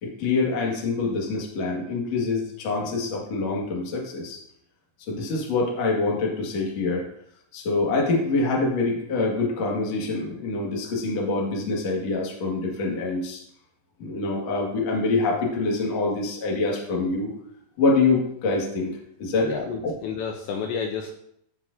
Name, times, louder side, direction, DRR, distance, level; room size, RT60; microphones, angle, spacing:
voice 1, 0.0-4.4 5.1-7.1 7.5-13.4 14.0-17.3 17.8-19.5 19.8-19.9, left 3 dB, 50° left, -2 dB, 2.1 m, -25 dB
voice 2, 19.4-21.1, left 6 dB, 80° left, 2 dB, 2.7 m, -30 dB
14.0 x 5.9 x 2.7 m, 0.71 s
omnidirectional pair, 5.5 m